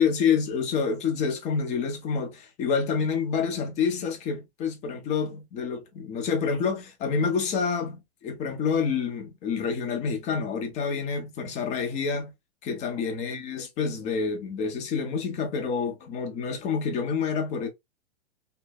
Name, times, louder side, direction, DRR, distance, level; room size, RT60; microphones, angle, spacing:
voice 1, 0.0-12.3 12.6-17.7, left 6 dB, 20° left, 0.5 m, -28 dB
2.7 x 2.0 x 2.2 m
hypercardioid pair, 120°, 33 cm